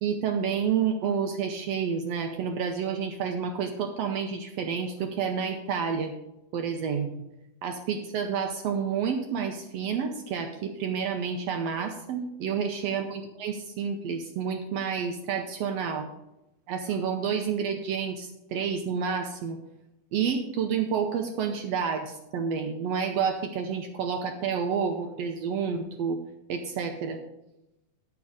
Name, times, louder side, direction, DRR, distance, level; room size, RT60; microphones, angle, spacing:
voice 1, 0.0-6.1 6.5-7.1 7.6-16.1 16.7-19.6 20.1-26.2 26.5-27.2, right 6 dB, 75° right, 5 dB, 1.6 m, -29 dB
9.6 x 7.1 x 4.9 m, 0.91 s
omnidirectional pair, 3.5 m